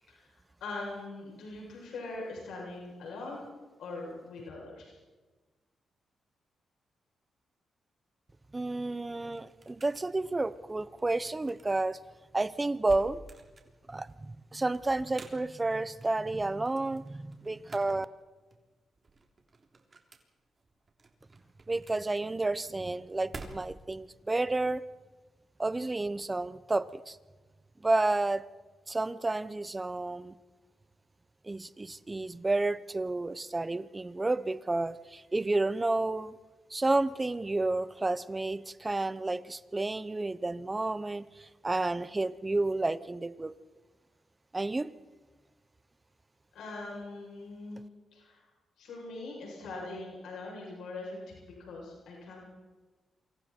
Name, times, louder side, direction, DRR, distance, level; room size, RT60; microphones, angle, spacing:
voice 1, 0.6-3.4 3.8-5.0 46.5-47.8 48.1-48.4 48.8-52.5, left 2 dB, 90° left, -2 dB, 7.8 m, -42 dB
voice 2, 8.5-12.0 12.3-13.2 13.9-18.1 21.7-24.8 25.6-27.2 27.8-28.4 28.9-30.3 31.4-36.4 36.7-43.5 44.5-44.9, right 2 dB, 20° right, 15 dB, 0.9 m, -31 dB
sound 1, 8.7-24.0, right 3 dB, 35° right, 3.5 m, -52 dB
28.0 x 25.0 x 4.5 m, 1.3 s
cardioid pair, 95°, 0 cm